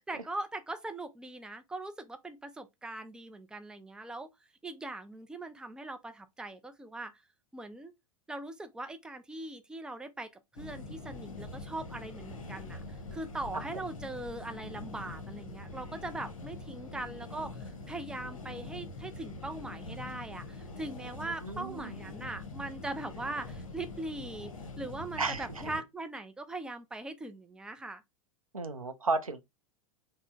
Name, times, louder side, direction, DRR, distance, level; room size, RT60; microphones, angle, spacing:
voice 1, 0.0-4.3 4.6-7.1 7.5-7.9 8.3-12.8 13.1-28.0, right 2 dB, 5° right, 0.4 m, -41 dB
sound 1, 10.5-25.8, left 3 dB, 70° left, 0.8 m, -44 dB
voice 2, 21.4-22.0 25.2-25.6 28.5-29.4, right 3 dB, 85° right, 0.5 m, -33 dB
3.6 x 2.0 x 3.5 m
figure-of-eight pair, 90°, 18 cm